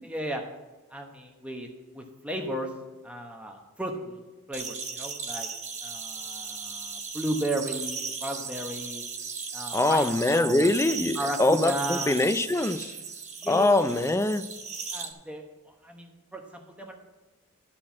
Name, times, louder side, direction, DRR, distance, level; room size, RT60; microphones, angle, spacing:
voice 1, 0.0-0.4 0.9-1.7 1.9-2.7 3.0-5.5 5.8-9.0 9.5-10.7 11.1-12.2 13.4-14.0 14.9-16.9, right 1 dB, 5° right, 2 dB, 0.9 m, -34 dB
sound 1, 4.5-15.1, right 5 dB, 30° right, 0.9 m, -36 dB
voice 2, 9.7-12.9 13.5-14.5, left 2 dB, 10° left, 11 dB, 0.3 m, -23 dB
12.0 x 4.4 x 7.3 m, 1.2 s
head